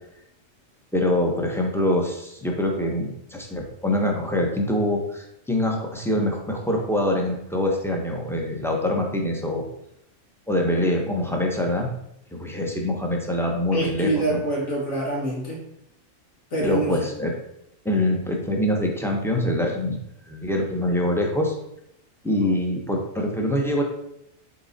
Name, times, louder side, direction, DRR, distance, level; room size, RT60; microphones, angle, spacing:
voice 1, 0.9-9.6 10.5-11.9 12.3-14.4 16.6-17.3 17.8-20.0 20.3-21.6 22.2-23.8, left 1 dB, ahead, 0 dB, 0.9 m, -24 dB
voice 2, 13.7-15.6 16.5-17.1, right 1 dB, 75° left, -5 dB, 2.2 m, -25 dB
7.1 x 3.7 x 4.2 m, 0.78 s
omnidirectional pair, 1.4 m